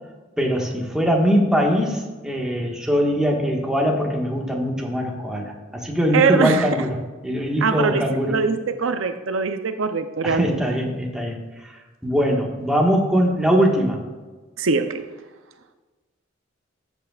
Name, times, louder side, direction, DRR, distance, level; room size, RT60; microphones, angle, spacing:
voice 1, 0.4-7.0 7.2-8.4 10.2-11.4 12.0-14.0, equal, 5° right, -1 dB, 1.6 m, -21 dB
voice 2, 6.1-6.7 7.6-10.6 14.6-15.0, right 5 dB, 75° right, 8 dB, 0.6 m, -22 dB
13.0 x 8.2 x 2.4 m, 1.3 s
head